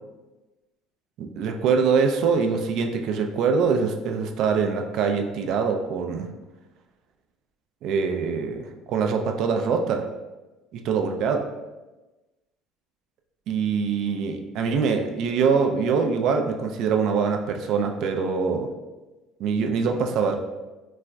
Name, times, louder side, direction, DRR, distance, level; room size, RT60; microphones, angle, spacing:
voice 1, 1.2-6.3 7.8-10.1 10.7-11.4 13.5-18.7 19.4-20.3, right 5 dB, 65° right, 4 dB, 0.3 m, -24 dB
4.0 x 2.4 x 2.2 m, 1.1 s
supercardioid pair, 110°, 0 cm